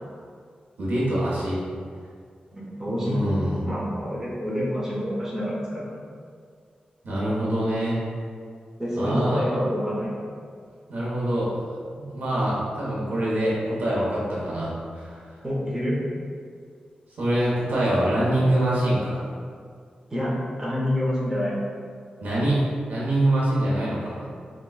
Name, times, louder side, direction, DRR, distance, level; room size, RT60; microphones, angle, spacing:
voice 1, 0.8-1.6 3.0-3.6 7.0-7.9 9.0-9.4 10.9-11.5 12.0-15.2 17.2-19.2 22.2-24.3, right 1 dB, 85° right, -7 dB, 0.8 m, -24 dB
voice 2, 2.5-3.2 3.6-6.0 8.8-10.1 15.4-16.0 20.1-20.3 20.6-21.5, equal, 15° right, -7 dB, 0.7 m, -27 dB
4.4 x 2.2 x 2.3 m, 2.1 s
wide cardioid pair, 120°, 3 cm